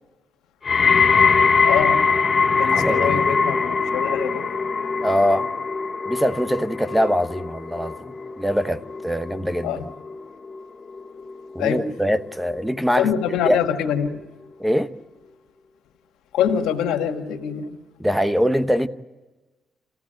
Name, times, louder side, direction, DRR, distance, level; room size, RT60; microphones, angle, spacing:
sound 1, 0.6-11.8 12.1-12.6 13.3-13.4, left 5 dB, 45° left, 0.8 m, -22 dB
voice 1, 1.6-2.0 2.5-4.4 9.6-9.8 11.6-11.8 13.0-14.2 16.3-17.8, left 8 dB, 90° left, 1.6 m, -24 dB
voice 2, 2.6-3.2 5.0-5.5 6.1-9.7 11.5-13.1 13.4-13.6 14.6-14.9 18.0-18.9, equal, 5° right, 0.9 m, -23 dB
26.5 x 15.5 x 9.0 m
cardioid pair, 65°, 0 cm